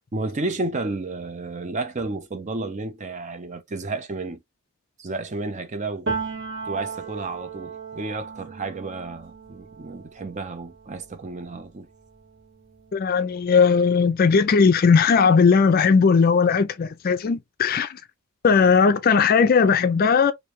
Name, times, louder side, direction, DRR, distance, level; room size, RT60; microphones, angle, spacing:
voice 1, 0.1-4.4 5.0-6.1 6.7-11.9, right 3 dB, 35° right, 0.6 m, -31 dB
Piano, 6.1-13.7 14.0-15.6, right 4 dB, 55° right, 1.4 m, -37 dB
voice 2, 12.9-18.0 18.4-20.3, left 5 dB, 40° left, 0.4 m, -18 dB
3.1 x 2.6 x 3.0 m
head